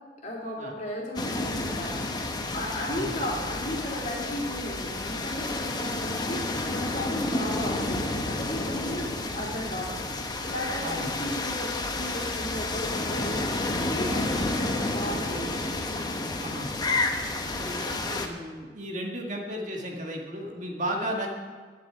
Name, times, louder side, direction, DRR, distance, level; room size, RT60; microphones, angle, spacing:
voice 1, 0.2-2.0 2.5-6.4 6.7-10.0 10.4-13.5 13.7-15.5, left 1 dB, 45° left, -3 dB, 3.2 m, -35 dB
sound 1, 1.2-18.3, left 2 dB, 25° left, 1.0 m, -30 dB
voice 2, 10.8-11.2 14.1-14.3 16.4-16.7 17.4-21.3, equal, 45° right, 0 dB, 1.7 m, -34 dB
11.5 x 7.1 x 8.9 m, 1.5 s
head